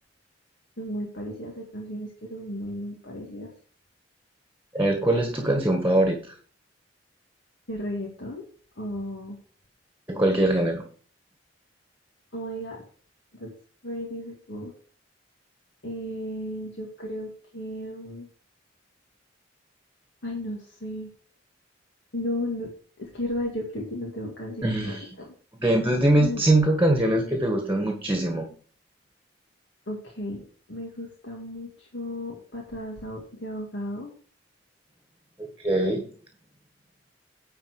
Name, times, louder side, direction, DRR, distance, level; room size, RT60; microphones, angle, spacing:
voice 1, 0.8-3.5 7.7-8.4 8.8-9.4 12.3-12.8 13.3-13.5 13.8-14.7 15.8-18.3 20.2-21.1 22.1-22.7 23.0-25.0 25.2-25.3 26.2-26.4 29.9-30.4 30.7-34.1, left 1 dB, 65° left, -1 dB, 2.1 m, -34 dB
voice 2, 4.7-6.2 10.1-10.8 24.6-25.1 25.5-28.5 35.4-36.0, right 1 dB, 10° right, 3 dB, 1.6 m, -22 dB
10.5 x 4.4 x 6.4 m, 0.42 s
head